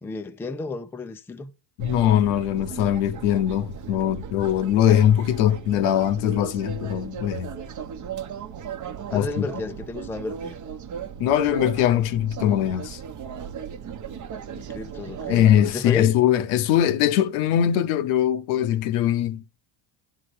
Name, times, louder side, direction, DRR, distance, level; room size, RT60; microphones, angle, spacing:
voice 1, 0.0-1.5 9.1-10.6 14.5-16.1, left 3 dB, 5° left, 0.4 m, -33 dB
voice 2, 1.8-7.5 9.1-9.5 11.2-13.0 15.3-19.4, left 11 dB, 80° left, 1.0 m, -21 dB
sound 1, 1.8-15.7, right 7 dB, 35° right, 0.9 m, -36 dB
10.5 x 3.8 x 4.8 m
cardioid pair, 120°, 50 cm